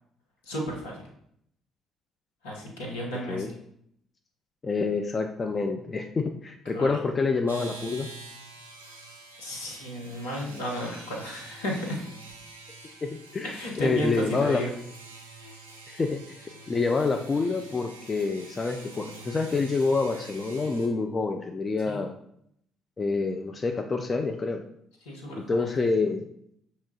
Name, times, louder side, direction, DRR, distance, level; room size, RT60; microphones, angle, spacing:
voice 1, 0.5-1.0 2.4-3.5 6.7-6.9 9.4-12.0 13.5-14.7 21.8-22.0 25.0-25.8, equal, 75° left, -2 dB, 0.8 m, -33 dB
voice 2, 4.6-8.1 13.0-14.6 15.9-22.2 23.0-24.6 25.5-26.2, left 4 dB, 30° left, 6 dB, 0.3 m, -27 dB
sound 1, 7.5-20.9, right 3 dB, 85° right, 0.4 m, -46 dB
5.7 x 2.8 x 2.7 m, 0.71 s
figure-of-eight pair, 45°, 0 cm